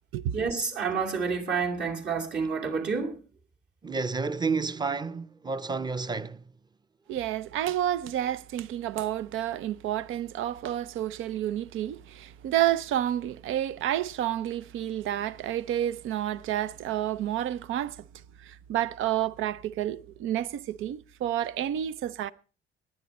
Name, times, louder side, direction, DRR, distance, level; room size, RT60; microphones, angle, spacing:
voice 1, 0.3-3.2, right 5 dB, 60° right, 2.6 m, -29 dB
voice 2, 3.8-6.4, right 4 dB, 20° right, 0.7 m, -30 dB
voice 3, 7.1-17.9 18.4-22.3, right 12 dB, 85° right, 0.6 m, -30 dB
18.0 x 10.0 x 4.2 m
cardioid pair, 90°, 20 cm